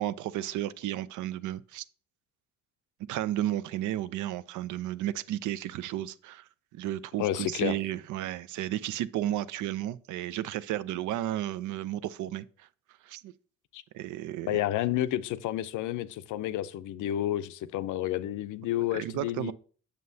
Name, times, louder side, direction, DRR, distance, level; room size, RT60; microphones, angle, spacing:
voice 1, 0.0-1.8 3.1-6.4 6.7-12.7 13.0-13.3 13.9-14.6 18.9-19.5, right 13 dB, 80° right, 0.5 m, -33 dB
voice 2, 7.2-7.8 13.7-13.8 14.4-19.5, left 13 dB, 80° left, 0.5 m, -30 dB
7.4 x 6.6 x 2.7 m
cardioid pair, 90°, 30 cm